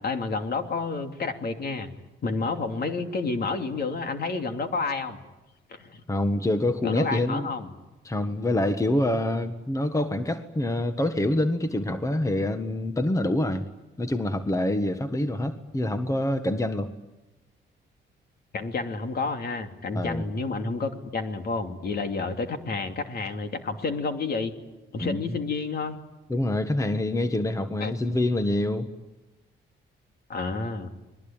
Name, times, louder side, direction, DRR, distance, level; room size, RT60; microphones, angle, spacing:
voice 1, 0.0-1.9 2.2-5.2 5.7-6.0 6.8-7.7 18.5-24.5 24.9-26.0 27.8-27.9 30.3-30.9, left 3 dB, 50° left, 6 dB, 2.9 m, -30 dB
voice 2, 6.1-7.5 8.0-13.6 14.0-16.9 19.9-20.2 25.0-25.3 26.3-28.9, left 1 dB, 15° left, 9 dB, 1.5 m, -26 dB
29.0 x 21.5 x 8.9 m, 1.0 s
cardioid pair, 90°, 20 cm